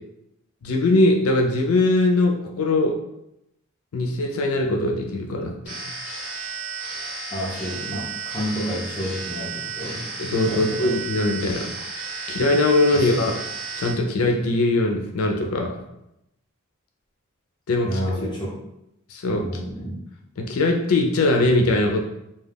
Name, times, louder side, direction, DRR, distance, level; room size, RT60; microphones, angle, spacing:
voice 1, 0.6-2.9 3.9-5.5 10.2-11.7 12.3-13.3 13.8-15.8 17.7-18.0 19.1-19.4 20.4-22.0, left 2 dB, 80° left, 2 dB, 0.4 m, -21 dB
sound 1, 5.6-13.9, right 4 dB, 5° right, 1.2 m, -33 dB
voice 2, 7.3-11.0 12.9-13.2 17.8-18.6 19.3-20.0, equal, 20° left, -4 dB, 0.6 m, -30 dB
2.3 x 2.2 x 3.3 m, 0.83 s
head